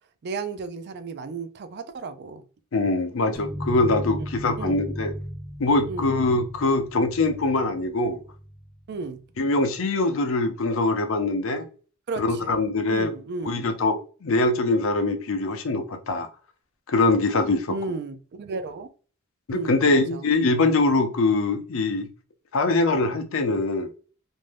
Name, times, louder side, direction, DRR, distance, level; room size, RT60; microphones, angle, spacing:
voice 1, 0.2-2.4 4.6-4.9 5.9-6.1 8.9-9.2 12.1-12.6 12.9-13.7 17.7-18.9 19.5-20.3, right 3 dB, 50° right, 0.4 m, -34 dB
voice 2, 2.7-5.1 5.6-8.2 9.4-11.7 12.2-13.1 13.5-16.3 16.9-17.8 19.5-22.1 22.5-23.9, left 2 dB, 70° left, 0.5 m, -23 dB
sound 1, 3.3-8.9, equal, 10° left, 0.6 m, -36 dB
2.6 x 2.1 x 3.2 m
head